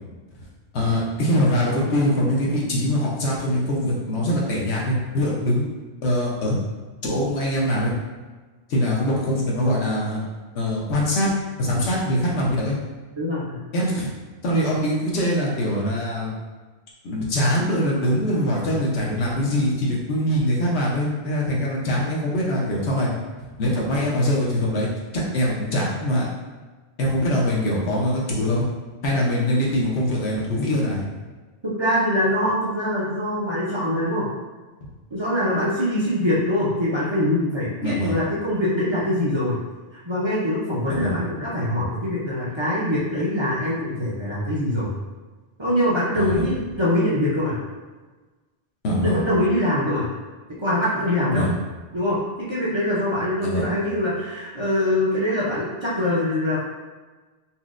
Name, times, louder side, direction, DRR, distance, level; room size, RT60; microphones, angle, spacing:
voice 1, 0.7-5.6 6.0-6.6 7.0-7.9 8.7-10.2 10.5-11.3 11.6-12.8 13.7-14.1 14.4-16.3 17.0-23.1 23.6-24.9 25.3-26.3 27.0-28.6 29.0-31.0 34.8-34.9 37.8-38.2 40.9-41.1 46.1-46.5 48.8-49.2 51.3-51.5 53.4-53.6, equal, 80° left, -3 dB, 1.1 m, -23 dB
voice 2, 13.2-13.6 31.6-34.3 35.1-39.6 40.0-45.0 45.6-47.6 48.9-50.1 50.6-51.4 51.9-56.6, left 1 dB, 35° right, -8 dB, 0.5 m, -23 dB
4.2 x 2.0 x 2.4 m, 1.3 s
omnidirectional pair, 1.1 m